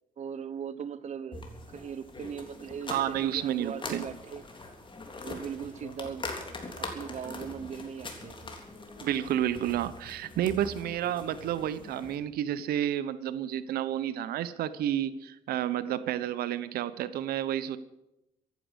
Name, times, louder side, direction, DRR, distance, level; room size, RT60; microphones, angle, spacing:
voice 1, 0.2-1.4 1.7-4.4 5.2-6.3 6.7-8.5, right 7 dB, 50° right, 0.8 m, -39 dB
sound 1, 1.3-12.2, left 2 dB, 30° left, 3.6 m, -42 dB
voice 2, 2.9-4.1 9.0-17.8, right 11 dB, 80° right, 0.9 m, -30 dB
14.5 x 10.5 x 8.1 m
cardioid pair, 85°, 16 cm